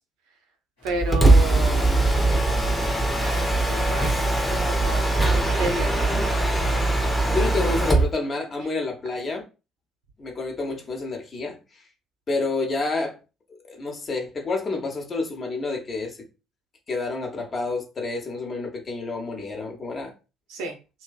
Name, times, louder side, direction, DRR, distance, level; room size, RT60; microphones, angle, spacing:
sound 1, 0.8-8.1, left 2 dB, 85° left, 1.2 m, -37 dB
voice 1, 0.8-1.9 3.2-6.2 20.5-20.8, right 2 dB, 65° right, 0.6 m, -32 dB
Mechanisms, 0.9-8.1, right 2 dB, ahead, 0.6 m, -21 dB
voice 2, 7.3-9.4 10.2-11.8 12.3-13.2 13.5-16.3 16.9-20.1, left 3 dB, 35° left, 0.8 m, -29 dB
2.5 x 2.1 x 2.3 m
figure-of-eight pair, 50°, 0 cm